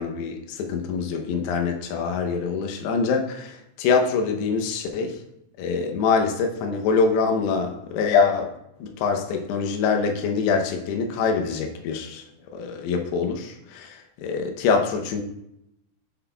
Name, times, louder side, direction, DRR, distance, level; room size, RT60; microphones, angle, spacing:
voice 1, 0.0-5.2 5.6-8.5 8.8-12.2 12.5-15.2, left 5 dB, 75° left, 4 dB, 2.7 m, -24 dB
7.7 x 7.5 x 2.3 m, 0.79 s
omnidirectional pair, 5.0 m